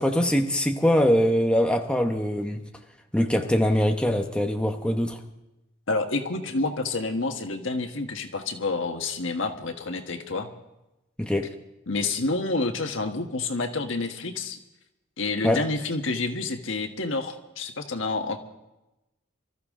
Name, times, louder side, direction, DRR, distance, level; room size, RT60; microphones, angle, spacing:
voice 1, 0.0-2.6 3.1-5.2 11.2-11.5 15.4-15.6, equal, 5° left, 3 dB, 0.9 m, -23 dB
voice 2, 5.9-10.5 11.9-14.6 15.2-18.4, left 3 dB, 85° left, 5 dB, 1.5 m, -28 dB
24.5 x 14.0 x 3.7 m, 0.96 s
head